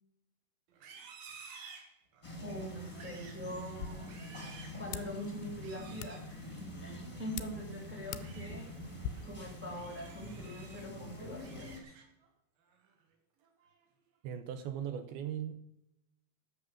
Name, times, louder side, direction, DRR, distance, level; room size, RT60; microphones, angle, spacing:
Livestock farm animals working animals, 0.7-2.4 2.8-3.5 3.9-4.8 5.6-6.2 7.9-8.5 9.0-9.2 9.7-10.9 11.2-12.3 12.7-13.0 13.4-13.8, right 5 dB, 60° right, 3.0 m, -54 dB
sound 1, 2.2-11.8, left 1 dB, 15° left, 1.2 m, -46 dB
voice 1, 2.4-4.2 4.8-6.5 6.8-8.7 9.2-11.7, equal, 5° right, 1 dB, 0.9 m, -43 dB
sound 2, 3.6-9.1, left 10 dB, 80° left, 2.7 m, -47 dB
voice 2, 14.2-15.6, right 9 dB, 80° right, 9 dB, 2.4 m, -38 dB
12.0 x 6.5 x 7.3 m, 0.81 s
omnidirectional pair, 5.1 m